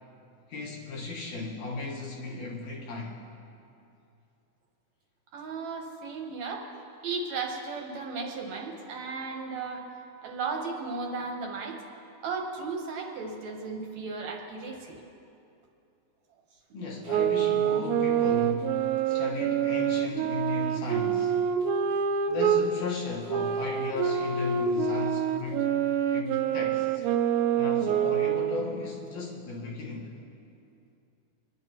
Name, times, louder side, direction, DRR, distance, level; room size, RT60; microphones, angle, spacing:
voice 1, 0.5-3.2 16.7-21.4 22.3-27.0 27.6-30.2, left 3 dB, 75° left, -3 dB, 2.8 m, -36 dB
voice 2, 5.3-6.7 7.0-9.9 10.2-11.8 12.2-15.0, right 4 dB, 70° right, 1 dB, 2.3 m, -35 dB
sound 1, 17.1-22.6 23.3-28.8, right 8 dB, 90° right, 2.1 m, -26 dB
24.5 x 10.5 x 3.0 m, 2.6 s
omnidirectional pair, 3.4 m